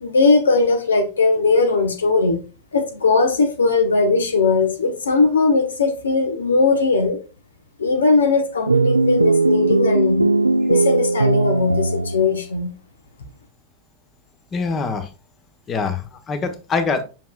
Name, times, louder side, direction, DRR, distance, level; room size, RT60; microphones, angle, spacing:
voice 1, 0.0-2.4 2.7-7.2 7.8-10.2 10.7-12.7, left 3 dB, 70° left, 1.1 m, -19 dB
sound 1, 8.7-12.4, right 3 dB, 80° right, 0.3 m, -18 dB
voice 2, 14.5-15.1 15.7-17.0, left 4 dB, 25° left, 1.0 m, -24 dB
7.5 x 5.6 x 2.4 m
figure-of-eight pair, 90°, 0 cm